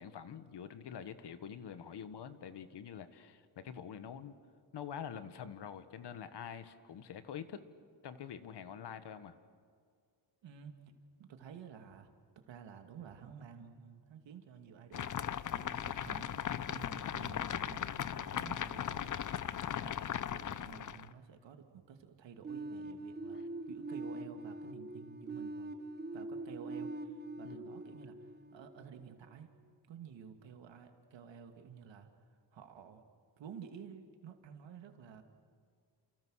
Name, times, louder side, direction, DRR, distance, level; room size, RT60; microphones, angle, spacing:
voice 1, 0.0-4.3 4.7-7.7 8.0-9.4 23.3-23.5 27.4-27.6, left 8 dB, 70° left, 11 dB, 1.7 m, -46 dB
voice 2, 10.4-12.1 12.5-19.3 19.8-25.7 26.1-29.5 29.9-32.1 32.5-33.0 33.4-35.2, right 7 dB, 85° right, 5 dB, 2.5 m, -52 dB
sound 1, 14.9-21.1, left 9 dB, 45° left, 0.7 m, -38 dB
sound 2, 22.4-29.2, right 2 dB, 25° right, 1.3 m, -43 dB
30.0 x 28.5 x 6.5 m, 2.1 s
wide cardioid pair, 135°, 43 cm